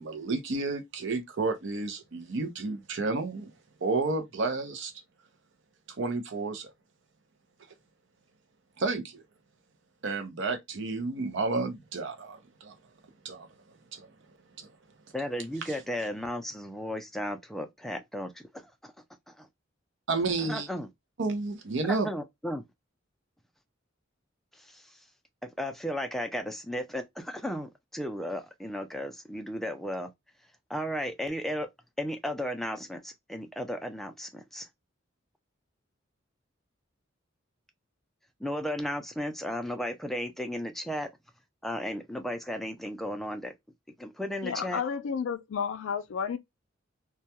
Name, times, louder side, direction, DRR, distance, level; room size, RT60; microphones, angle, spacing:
voice 1, 0.0-5.3 5.9-6.7 7.6-7.7 8.8-9.2 10.0-15.1 15.6-15.8 20.1-20.7 21.2-22.1, right 3 dB, 65° right, 0.6 m, -32 dB
voice 2, 15.1-18.9 19.3-19.5 20.5-20.9 21.9-22.7 24.5-25.0 25.4-30.1 30.7-31.7 32.0-34.7 38.4-41.1 41.6-43.5 44.0-44.8, equal, ahead, 0.4 m, -35 dB
voice 3, 44.4-46.4, left 6 dB, 80° left, 0.4 m, -31 dB
2.2 x 2.2 x 2.7 m
head